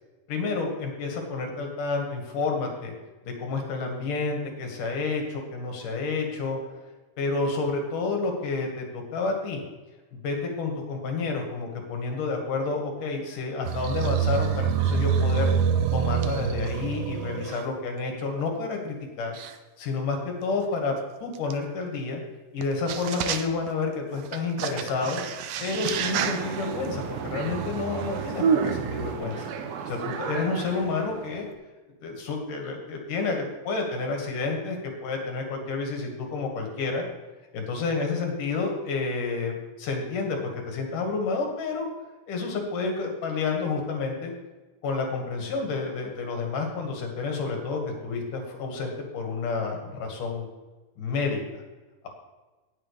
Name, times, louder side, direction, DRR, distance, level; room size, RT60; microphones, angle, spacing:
voice 1, 0.3-2.9 3.3-6.6 7.2-9.6 10.1-15.5 15.9-19.3 19.8-20.9 21.2-22.2 22.5-25.2 25.6-29.4 29.9-31.5 32.0-34.8 35.0-37.0 37.5-41.9 42.3-44.3 44.8-50.5 51.0-51.4, left 4 dB, 70° left, 2 dB, 3.3 m, -30 dB
sound 1, 13.6-17.6 18.4-18.5 19.4-19.5 21.5-21.6 22.6-22.7 22.9-23.7 24.1-29.1, right 7 dB, 90° right, 1.4 m, -27 dB
sound 2, 25.9-31.5, right 6 dB, 65° right, 2.1 m, -36 dB
19.0 x 7.5 x 3.4 m, 1.2 s
omnidirectional pair, 3.9 m